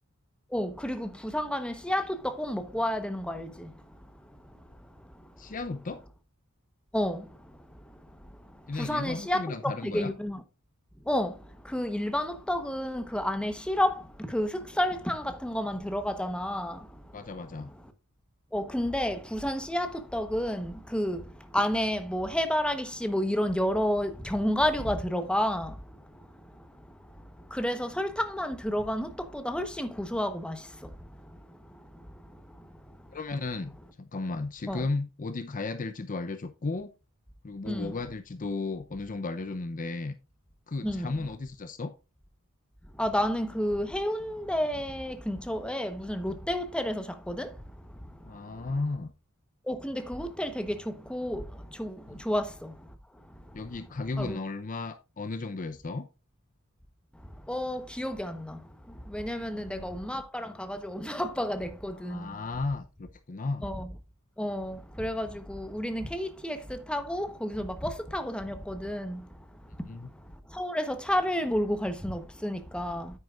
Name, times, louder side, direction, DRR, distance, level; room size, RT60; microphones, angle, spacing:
voice 1, 0.5-2.0 2.4-3.5 6.9-7.2 8.8-10.4 11.1-11.3 11.7-13.9 14.3-14.5 14.8-16.7 18.5-21.2 21.5-25.7 27.6-29.1 29.4-30.6 34.7-34.8 37.7-37.9 40.8-41.1 43.0-47.5 49.7-50.8 51.1-51.4 51.8-51.9 52.3-52.4 54.2-54.4 57.5-58.4 59.1-62.3 63.6-63.9 64.4-66.6 66.9-69.2 70.6-73.1, equal, 5° left, 1.0 m, -30 dB
voice 2, 5.4-6.0 8.7-10.1 17.1-17.7 33.1-36.9 37.4-40.1 40.7-41.9 48.2-49.1 52.1-52.2 53.5-56.1 59.4-59.9 62.0-63.7 69.9-70.1, left 3 dB, 35° left, 0.6 m, -34 dB
9.4 x 9.3 x 2.4 m
head